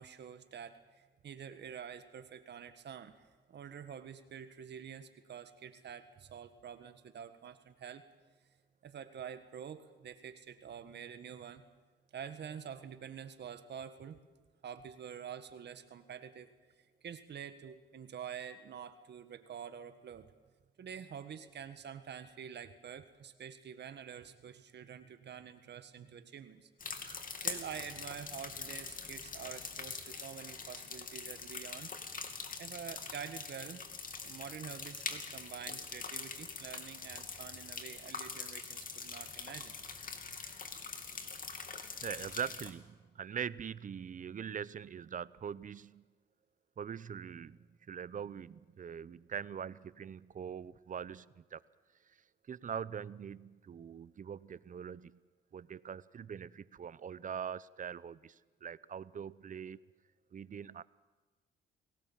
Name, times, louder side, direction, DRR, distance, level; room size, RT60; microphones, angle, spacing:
voice 1, 0.0-8.0 8.8-11.7 12.1-14.2 14.6-16.5 16.8-20.3 20.8-26.7 27.4-31.9 32.6-33.8 34.2-39.7, right 8 dB, 60° right, 9 dB, 1.8 m, -47 dB
sound 1, 26.8-42.7, left 5 dB, 45° left, 2.8 m, -43 dB
voice 2, 27.1-27.4 42.0-46.1 46.8-51.6 52.5-55.2 55.5-59.8 60.3-60.8, right 7 dB, 40° right, 18 dB, 0.8 m, -43 dB
29.0 x 19.0 x 7.5 m, 1.3 s
cardioid pair, 90°, 20 cm